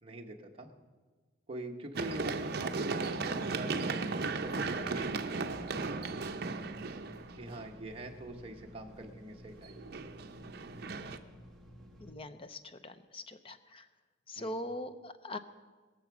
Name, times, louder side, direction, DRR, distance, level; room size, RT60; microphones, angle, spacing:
voice 1, 0.0-0.7 1.5-3.8 4.1-5.5 7.4-10.0 14.4-14.6, right 1 dB, 30° right, 1 dB, 1.1 m, -44 dB
Run, 1.9-7.8 9.6-11.2, right 3 dB, 55° right, 0.6 m, -36 dB
sound 1, 4.3-12.1, equal, 5° left, 1.7 m, -54 dB
voice 2, 12.0-13.9 14.3-15.4, left 1 dB, 30° left, 11 dB, 0.6 m, -42 dB
20.5 x 6.9 x 6.1 m, 1.4 s
head